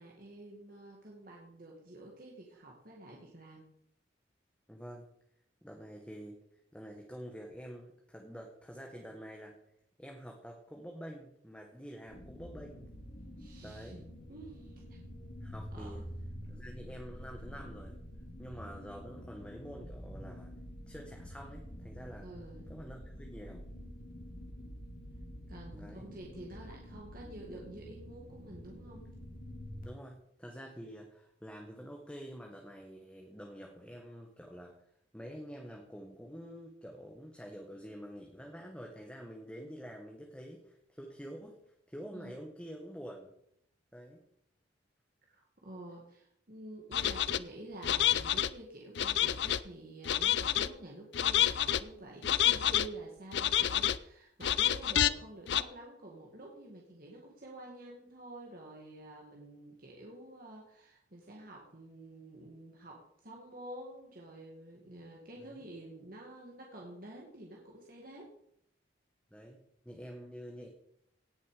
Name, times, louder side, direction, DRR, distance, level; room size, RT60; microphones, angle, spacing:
voice 1, 0.0-3.7 13.4-14.0 14.3-14.8 15.7-16.0 22.2-22.7 25.5-29.0 42.1-42.3 45.3-68.3, right 1 dB, 50° right, -1 dB, 2.1 m, -49 dB
voice 2, 4.7-5.1 5.6-6.4 6.7-9.5 10.0-12.9 13.6-14.0 15.4-16.0 16.5-18.0 18.4-20.5 20.9-22.3 22.7-23.7 25.7-26.1 29.8-34.7 35.1-43.3 43.9-44.2 52.4-52.7 65.3-65.6 69.3-69.6 69.8-70.7, equal, 5° left, 0 dB, 1.5 m, -47 dB
sound 1, 12.1-29.8, equal, 45° left, 2.5 m, -47 dB
sound 2, 46.9-47.4 47.8-48.5 49.0-49.6 50.0-50.7 51.1-51.8 52.2-52.9 53.3-54.0 54.4-55.1 55.5-55.6, left 11 dB, 65° left, 0.5 m, -28 dB
18.0 x 6.9 x 5.0 m, 0.73 s
head